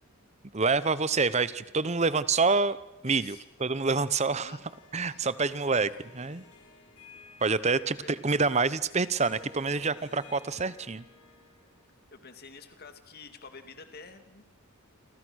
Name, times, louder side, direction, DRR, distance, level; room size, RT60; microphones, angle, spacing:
voice 1, 0.5-2.8 3.0-4.6 4.9-6.4 7.4-11.0, right 4 dB, 30° right, 16 dB, 0.8 m, -27 dB
voice 2, 3.0-3.4 4.3-4.6 5.0-5.3 7.8-8.1 12.1-14.5, left 4 dB, 45° left, 7 dB, 2.4 m, -49 dB
Harp, 3.6-12.0, left 4 dB, 80° left, 7.3 m, -55 dB
28.5 x 26.5 x 6.4 m, 0.89 s
head